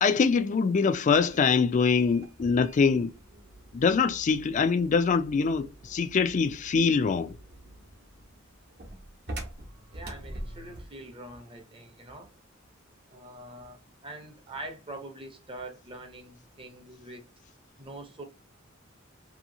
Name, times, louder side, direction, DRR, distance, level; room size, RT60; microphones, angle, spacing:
voice 1, 0.0-3.1 3.7-7.4, left 5 dB, 40° left, 0.3 m, -24 dB
sound 1, 1.1-11.0, right 1 dB, 55° right, 0.9 m, -45 dB
voice 2, 9.9-12.4 13.1-17.3 17.8-18.2, right 1 dB, 25° right, 0.7 m, -44 dB
2.8 x 2.7 x 2.6 m
head